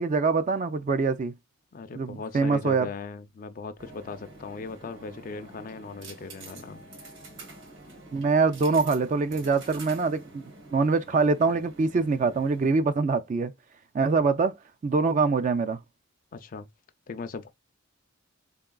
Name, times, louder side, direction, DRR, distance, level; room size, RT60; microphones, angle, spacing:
voice 1, 0.0-1.3 2.0-2.9 8.1-10.4 10.7-13.5 13.9-14.5 14.8-15.8, right 4 dB, 35° right, 0.3 m, -24 dB
voice 2, 1.7-6.8 16.3-16.7 17.1-17.5, left 4 dB, 40° left, 0.4 m, -38 dB
sound 1, 3.8-12.7, right 2 dB, 60° right, 1.4 m, -47 dB
3.7 x 3.6 x 2.2 m
head